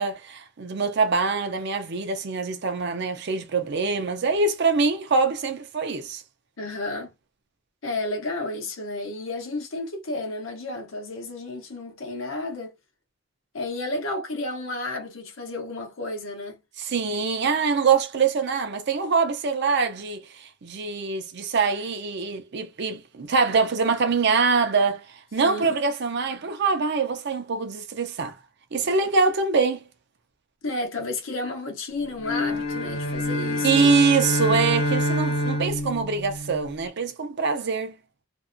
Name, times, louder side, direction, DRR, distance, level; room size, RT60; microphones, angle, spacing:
voice 1, 0.0-6.2 16.8-25.0 25.3-28.4 28.7-29.8 33.6-38.0, right 4 dB, 60° right, 0.6 m, -24 dB
voice 2, 6.6-7.1 7.8-12.7 13.5-16.6 25.4-25.8 30.6-34.0, left 2 dB, 85° left, 0.8 m, -32 dB
sound 1, 32.2-36.9, left 1 dB, 55° left, 0.6 m, -26 dB
2.6 x 2.2 x 2.5 m
head